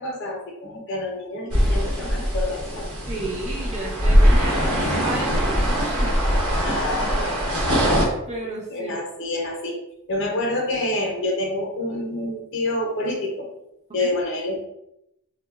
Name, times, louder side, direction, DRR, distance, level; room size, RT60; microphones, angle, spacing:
voice 1, 0.0-2.9 6.5-7.3 8.7-9.8 10.1-13.5 13.9-14.6, left 1 dB, 55° left, 1 dB, 0.5 m, -27 dB
sound 1, 1.5-8.1, equal, 80° right, 0.8 m, -21 dB
voice 2, 3.1-6.1 8.3-8.9 14.0-14.1, right 2 dB, 30° right, -2 dB, 0.6 m, -32 dB
3.3 x 2.0 x 2.3 m, 0.83 s
head